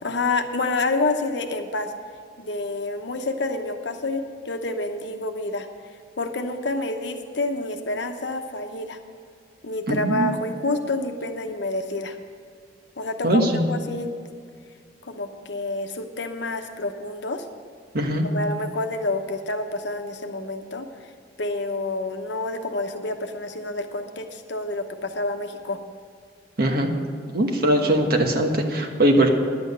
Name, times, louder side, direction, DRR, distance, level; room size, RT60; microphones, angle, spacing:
voice 1, 0.0-1.9 2.4-5.7 6.2-9.0 9.6-12.2 13.0-13.4 13.7-14.1 15.0-17.4 18.2-20.9 21.4-25.8, left 2 dB, 65° left, 6 dB, 1.0 m, -28 dB
voice 2, 9.9-10.3 13.2-13.7 17.9-18.2 26.6-26.9 27.3-29.3, right 1 dB, 55° right, 3 dB, 1.3 m, -20 dB
10.5 x 8.8 x 6.8 m, 2.2 s
head